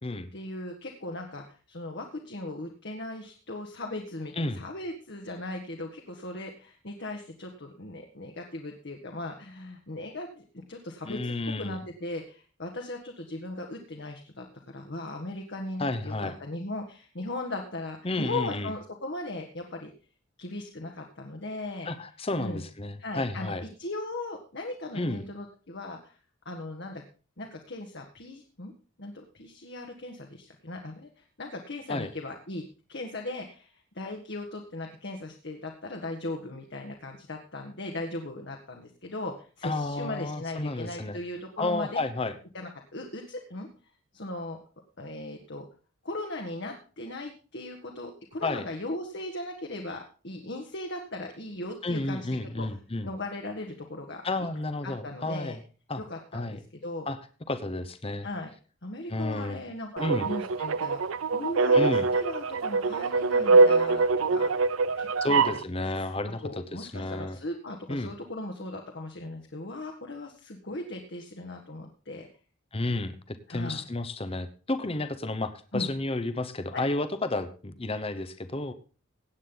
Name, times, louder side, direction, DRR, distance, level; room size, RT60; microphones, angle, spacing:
voice 1, 0.3-14.4 14.7-19.9 20.4-21.9 22.4-22.6 23.0-26.2 26.4-27.0 27.4-28.7 29.0-32.6 32.9-42.0 42.5-43.7 44.1-44.6 45.0-45.6 46.0-52.3 52.6-54.2 54.8-55.6 56.0-57.1 58.2-58.5 58.8-66.1 66.4-72.3 73.5-73.8 75.7-75.9, left 2 dB, 60° left, 2 dB, 1.6 m, -38 dB
voice 2, 11.0-11.8 15.8-16.3 18.0-18.7 21.8-23.6 24.9-25.3 31.9-32.1 39.6-41.2 41.6-42.3 48.4-48.6 51.8-53.1 54.2-55.6 55.9-56.0 56.3-56.6 57.1-57.2 57.5-58.3 59.1-59.6 60.0-60.3 61.7-62.1 65.2-66.4 66.7-67.4 67.9-68.1 72.7-78.7, left 2 dB, 30° left, 10 dB, 0.9 m, -31 dB
sound 1, 60.0-65.6, right 4 dB, 85° right, 0.5 m, -23 dB
17.0 x 8.7 x 3.9 m, 0.37 s
head